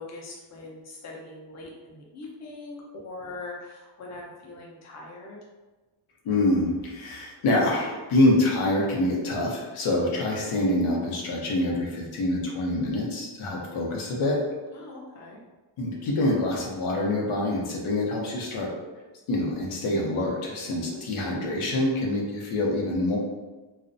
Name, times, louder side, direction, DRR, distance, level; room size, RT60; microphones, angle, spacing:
voice 1, 0.0-5.4 14.7-15.4 20.8-21.2, left 2 dB, 35° left, -3 dB, 0.5 m, -42 dB
voice 2, 6.2-14.4 15.8-18.7 19.3-23.2, left 1 dB, 90° left, -2 dB, 0.7 m, -26 dB
2.4 x 2.0 x 2.5 m, 1.2 s
wide cardioid pair, 145°, 49 cm